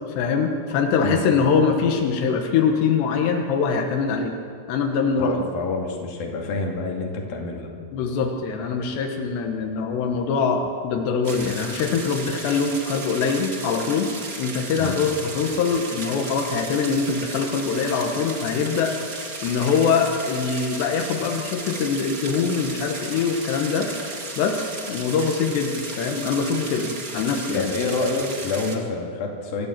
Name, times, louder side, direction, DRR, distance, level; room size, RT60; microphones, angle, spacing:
voice 1, 0.1-4.3 4.7-5.5 7.9-14.1 14.4-18.9 19.4-23.9 24.4-27.7, left 5 dB, 90° left, 3 dB, 3.6 m, -23 dB
voice 2, 5.2-7.7 14.8-15.0 27.5-29.7, left 3 dB, 60° left, 0 dB, 4.2 m, -27 dB
sound 1, 11.2-28.8, right 3 dB, 35° right, 1.5 m, -35 dB
26.0 x 15.0 x 7.5 m, 2.3 s
omnidirectional pair, 4.8 m